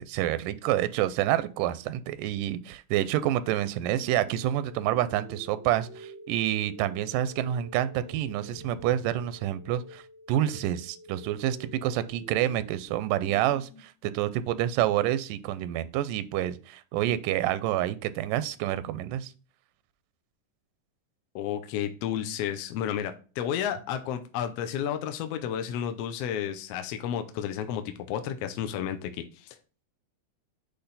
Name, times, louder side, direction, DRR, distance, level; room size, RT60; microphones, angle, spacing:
voice 1, 0.0-10.0 10.3-19.3, right 12 dB, 85° right, 15 dB, 2.1 m, -28 dB
sound 1, 3.8-13.8, equal, 45° right, 1.0 m, -48 dB
voice 2, 21.3-29.1 29.4-29.6, left 9 dB, 80° left, 8 dB, 1.4 m, -32 dB
8.0 x 3.4 x 4.0 m, 0.36 s
omnidirectional pair, 3.7 m